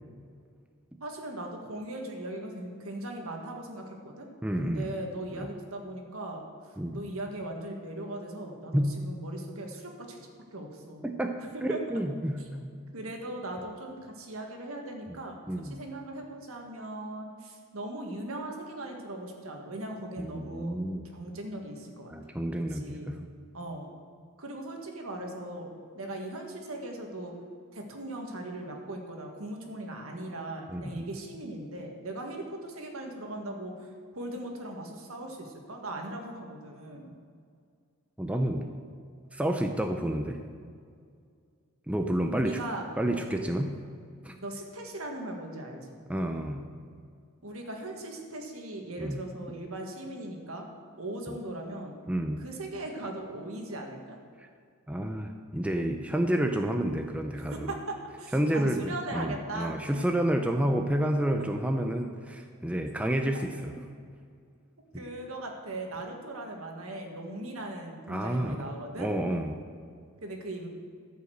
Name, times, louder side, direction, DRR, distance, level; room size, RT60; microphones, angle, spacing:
voice 1, 1.0-4.3 4.6-6.4 6.9-10.2 10.5-11.1 11.7-11.8 12.9-20.8 21.1-22.1 22.7-23.1 23.5-23.9 24.4-27.3 27.7-37.1 42.3-42.8 43.1-43.2 44.4-45.9 47.4-50.7 51.0-51.9 52.4-54.2 57.5-59.8 63.3-63.4 64.9-69.1 70.2-70.7, right 1 dB, 70° right, 2 dB, 1.8 m, -39 dB
voice 2, 4.4-4.9 5.3-5.5 6.8-7.0 8.7-8.9 11.0-12.7 15.5-15.8 20.2-21.0 22.1-23.2 30.7-31.1 38.2-38.7 39.3-40.4 41.9-42.6 43.0-43.8 44.2-44.4 46.1-46.7 49.0-49.2 52.1-52.4 54.4-54.5 54.9-57.7 58.3-63.9 68.1-68.7 69.0-69.5, right 1 dB, 5° right, 4 dB, 0.5 m, -30 dB
13.5 x 5.7 x 7.9 m, 2.2 s
head